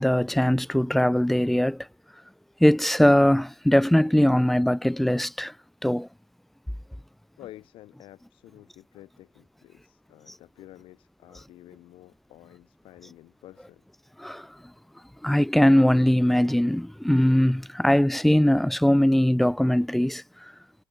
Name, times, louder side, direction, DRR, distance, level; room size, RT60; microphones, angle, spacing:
voice 1, 0.0-1.9 2.6-5.5 5.8-6.1 14.2-14.5 15.2-20.2, left 1 dB, ahead, 0.4 m, -21 dB
voice 2, 7.4-13.8, left 15 dB, 55° left, 1.6 m, -50 dB
cardioid pair, 130°, 11 cm